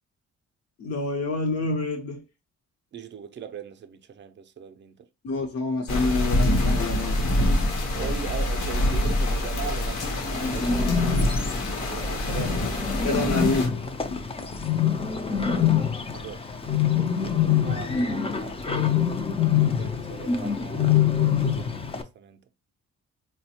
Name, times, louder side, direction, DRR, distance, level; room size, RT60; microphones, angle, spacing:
voice 1, 0.8-2.2 5.2-7.3 13.0-14.2, left 3 dB, 55° left, 0.8 m, -27 dB
voice 2, 2.9-5.1 7.7-10.9 11.9-12.6 16.1-19.0 19.6-22.5, right 8 dB, 40° right, 0.5 m, -40 dB
sound 1, 5.9-13.7, left 1 dB, 85° left, 1.0 m, -25 dB
Bird, 9.9-22.0, left 8 dB, 20° left, 0.4 m, -25 dB
4.0 x 2.2 x 2.8 m
cardioid pair, 100°, 29 cm